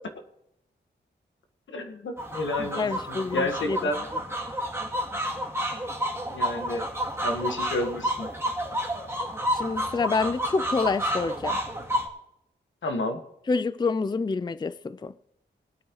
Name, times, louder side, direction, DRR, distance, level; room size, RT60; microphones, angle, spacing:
voice 1, 1.7-4.0 6.3-6.8 7.2-8.3 12.8-13.2, left 1 dB, 85° left, 1.6 m, -30 dB
sound 1, 2.2-12.1, equal, 15° right, 2.0 m, -30 dB
voice 2, 2.6-3.9 9.5-11.6 13.5-15.1, left 4 dB, 25° left, 0.4 m, -27 dB
19.5 x 9.1 x 3.1 m
cardioid pair, 65°, 19 cm